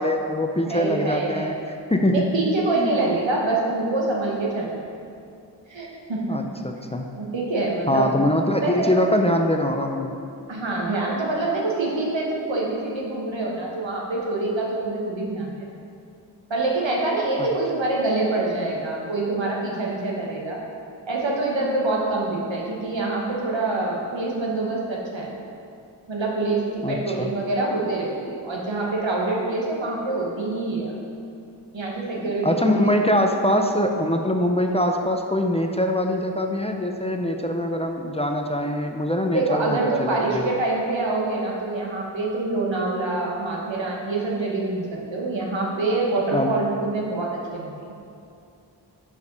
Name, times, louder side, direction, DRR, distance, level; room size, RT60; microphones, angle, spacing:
voice 1, 0.0-1.6 1.9-2.3 2.8-3.0 6.3-7.1 7.9-10.1 17.4-17.5 26.8-27.3 32.2-40.5 46.3-46.5, left 1 dB, 15° left, 3 dB, 0.4 m, -23 dB
voice 2, 0.6-1.5 2.1-4.8 5.7-6.4 7.2-8.1 8.6-9.1 10.5-15.5 16.5-20.6 21.1-25.3 26.1-30.9 31.7-32.9 39.3-47.8, right 2 dB, 85° right, -3 dB, 1.1 m, -25 dB
5.1 x 5.0 x 5.2 m, 2.5 s
wide cardioid pair, 45°, 44 cm